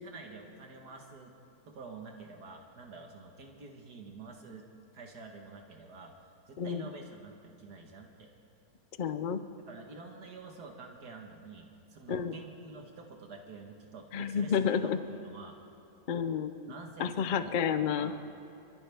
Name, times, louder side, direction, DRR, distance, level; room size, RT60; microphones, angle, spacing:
voice 1, 0.0-1.3 1.7-4.7 4.9-6.1 6.5-8.3 9.7-15.6 16.7-18.1, right 4 dB, 70° right, 2 dB, 1.9 m, -48 dB
voice 2, 6.6-6.9 9.0-9.4 12.1-12.3 14.1-15.0 16.1-16.7 17.0-18.1, left 7 dB, 75° left, 11 dB, 0.4 m, -30 dB
28.0 x 14.5 x 3.5 m, 2.8 s
omnidirectional pair, 1.8 m